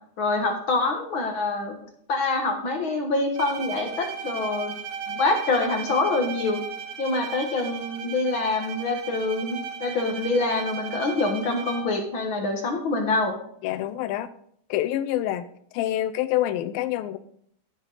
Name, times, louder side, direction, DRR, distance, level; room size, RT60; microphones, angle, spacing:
voice 1, 0.2-1.8 2.1-4.7 5.2-6.6 7.0-13.3, left 3 dB, 55° left, 3 dB, 1.5 m, -25 dB
Bowed string instrument, 3.4-12.1, right 7 dB, 90° right, 3.0 m, -36 dB
voice 2, 13.6-14.3 14.7-15.5 15.7-17.2, left 13 dB, 90° left, 10 dB, 2.4 m, -26 dB
14.0 x 9.0 x 4.0 m, 0.66 s
omnidirectional pair, 4.1 m